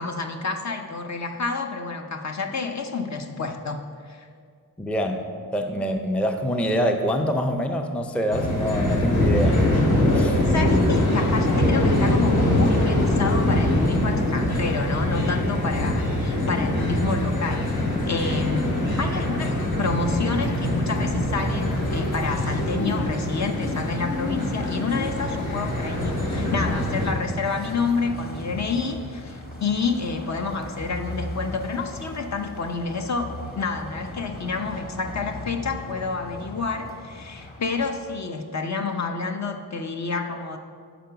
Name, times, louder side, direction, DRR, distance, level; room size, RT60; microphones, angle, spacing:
voice 1, 0.0-4.2 10.4-40.6, left 4 dB, 50° left, 5 dB, 0.7 m, -29 dB
voice 2, 4.8-5.3 5.5-10.5, equal, 5° left, 5 dB, 0.5 m, -25 dB
sound 1, 8.3-27.1, left 1 dB, 80° left, 1.4 m, -23 dB
sound 2, 20.0-38.2, left 1 dB, 25° left, 1.5 m, -38 dB
5.9 x 5.0 x 5.7 m, 2.1 s
cardioid pair, 60°, 36 cm